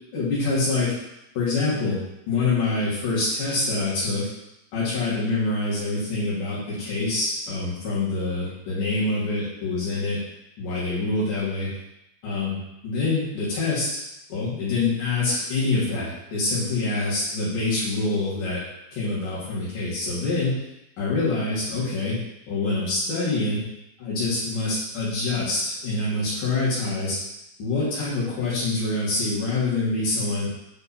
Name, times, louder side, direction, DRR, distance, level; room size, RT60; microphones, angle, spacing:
voice 1, 0.1-0.9 1.4-2.0 2.3-4.3 4.7-10.2 10.6-11.7 12.2-13.9 14.3-18.6 18.9-20.6 21.0-22.2 22.5-23.6 24.0-27.2 27.6-30.5, left 3 dB, 90° left, -10 dB, 3.9 m, -25 dB
8.7 x 4.6 x 4.3 m, 0.88 s
omnidirectional pair, 3.5 m